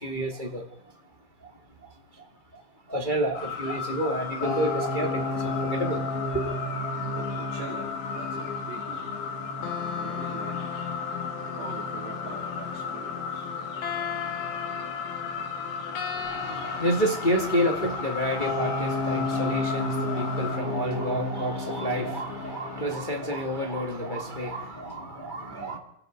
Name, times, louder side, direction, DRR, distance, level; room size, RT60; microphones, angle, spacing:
voice 1, 0.0-0.6 2.9-6.0 6.3-6.4 16.2-25.8, equal, 25° left, 2 dB, 1.0 m, -29 dB
sound 1, 3.3-20.6, left 5 dB, 85° left, 4.5 m, -35 dB
sound 2, 4.4-22.8, left 3 dB, 65° left, 4.0 m, -33 dB
voice 2, 7.1-9.1 9.9-10.7 11.5-13.5 25.5-25.8, right 6 dB, 80° right, -1 dB, 4.8 m, -43 dB
28.5 x 18.0 x 5.2 m, 0.74 s
omnidirectional pair, 4.7 m